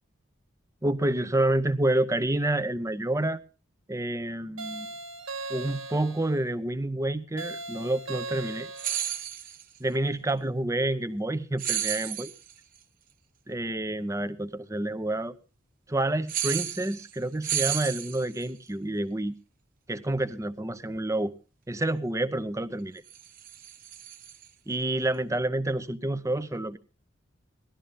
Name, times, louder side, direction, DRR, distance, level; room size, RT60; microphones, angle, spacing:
voice 1, 0.8-3.4 3.9-4.9 5.5-8.7 9.8-12.3 13.5-15.3 15.9-19.4 19.9-21.3 21.7-23.0 24.7-26.8, right 1 dB, 15° right, 0.7 m, -28 dB
sound 1, 4.6-6.3 7.4-9.1, right 3 dB, 90° right, 1.7 m, -38 dB
sound 2, 8.8-9.6 11.6-12.5 16.3-17.2 17.4-18.5 23.1-24.4, right 11 dB, 45° right, 0.9 m, -32 dB
18.0 x 12.5 x 3.8 m
head